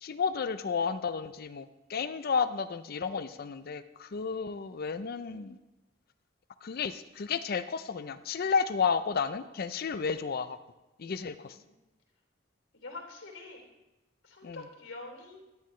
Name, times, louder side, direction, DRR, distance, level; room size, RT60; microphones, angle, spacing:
voice 1, 0.0-5.6 6.6-10.6 11.0-11.5 14.4-14.6, left 5 dB, 50° left, 12 dB, 0.5 m, -32 dB
voice 2, 11.0-11.7 12.7-13.6 14.2-15.4, left 3 dB, 85° left, 0 dB, 3.2 m, -46 dB
13.5 x 9.6 x 3.2 m, 1.1 s
head